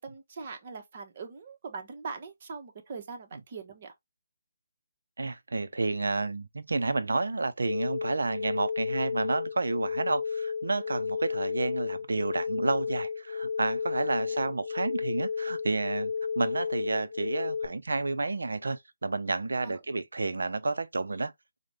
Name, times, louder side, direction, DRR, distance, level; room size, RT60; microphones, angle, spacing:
voice 1, 0.0-3.9 19.6-19.8, right 5 dB, 40° right, 0.9 m, -41 dB
voice 2, 5.2-21.3, right 3 dB, 75° right, 0.5 m, -30 dB
sound 1, 7.7-17.7, left 5 dB, 80° left, 0.5 m, -32 dB
4.9 x 2.1 x 3.0 m
figure-of-eight pair, 150°, 0 cm